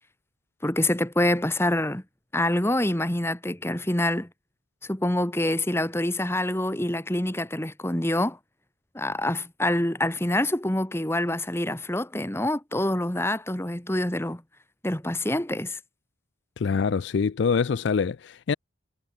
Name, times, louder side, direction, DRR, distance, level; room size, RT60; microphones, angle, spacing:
voice 1, 0.6-2.0 2.3-4.3 4.8-8.4 8.9-14.4 14.8-15.8, left 1 dB, 10° left, 1.5 m, -26 dB
voice 2, 16.6-18.5, left 5 dB, 60° left, 0.4 m, -25 dB
head